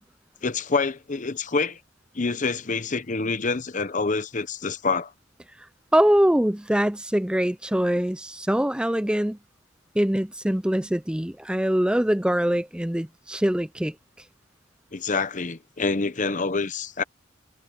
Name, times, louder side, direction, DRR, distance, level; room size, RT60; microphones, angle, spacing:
voice 1, 0.4-1.8 2.1-5.1 14.9-17.0, left 4 dB, 40° left, 0.9 m, -26 dB
voice 2, 5.9-9.4 10.0-13.9, equal, 5° right, 0.5 m, -23 dB
head